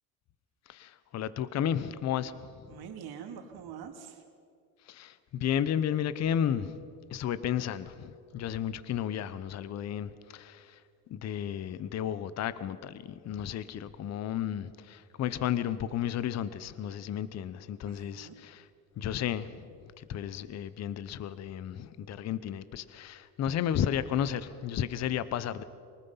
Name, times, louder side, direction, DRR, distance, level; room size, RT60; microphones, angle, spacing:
voice 1, 0.7-2.8 4.8-6.8 7.1-18.7 19.0-25.6, left 9 dB, 35° left, 0.8 m, -33 dB
voice 2, 2.7-4.2 17.8-18.3, right 8 dB, 55° right, 2.6 m, -44 dB
24.0 x 19.5 x 5.7 m
cardioid pair, 125°, 43 cm